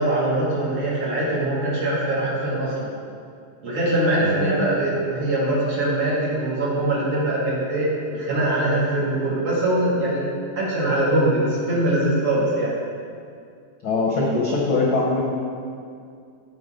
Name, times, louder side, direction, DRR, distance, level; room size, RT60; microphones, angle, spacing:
voice 1, 0.0-2.9 3.6-10.2 10.5-12.8, right 1 dB, 50° right, -9 dB, 3.4 m, -22 dB
voice 2, 4.2-4.7 13.8-15.2, left 3 dB, 65° left, -3 dB, 1.3 m, -22 dB
14.5 x 5.4 x 3.8 m, 2.3 s
omnidirectional pair, 3.6 m